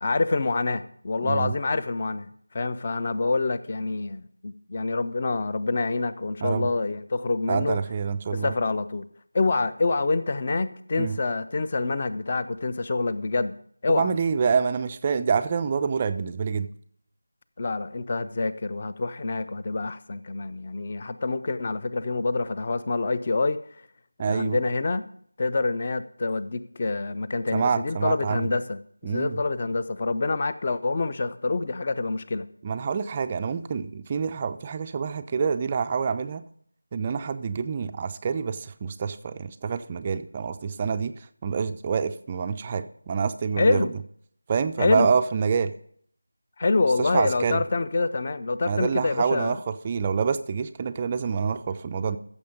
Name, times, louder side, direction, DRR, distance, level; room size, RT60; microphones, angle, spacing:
voice 1, 0.0-2.3 2.5-7.8 8.3-9.1 9.3-13.5 13.8-14.1 17.6-23.6 24.2-25.0 25.4-28.8 29.1-32.5 43.6-43.9 44.8-45.1 46.6-49.6, left 3 dB, 30° left, 13 dB, 0.6 m, -26 dB
voice 2, 1.2-1.6 6.4-6.7 7.5-8.5 11.0-11.2 13.9-16.7 24.2-24.6 27.5-28.5 29.0-29.4 32.6-36.4 36.9-43.9 44.5-45.7 47.0-47.6 48.6-52.2, right 6 dB, 20° right, 10 dB, 0.4 m, -27 dB
15.0 x 7.0 x 5.2 m, 0.63 s
figure-of-eight pair, 170°, 0 cm